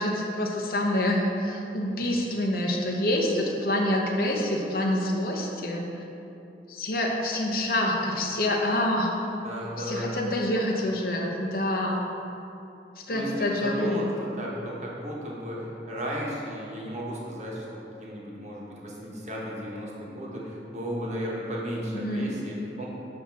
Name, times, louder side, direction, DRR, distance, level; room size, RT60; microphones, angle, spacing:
voice 1, 0.0-5.8 6.7-9.1 9.8-12.0 13.1-14.0 21.9-22.3, left 1 dB, 55° left, 0 dB, 0.8 m, -26 dB
voice 2, 9.4-10.2 13.1-22.9, equal, 40° right, -4 dB, 1.1 m, -34 dB
8.0 x 2.8 x 5.8 m, 2.8 s
head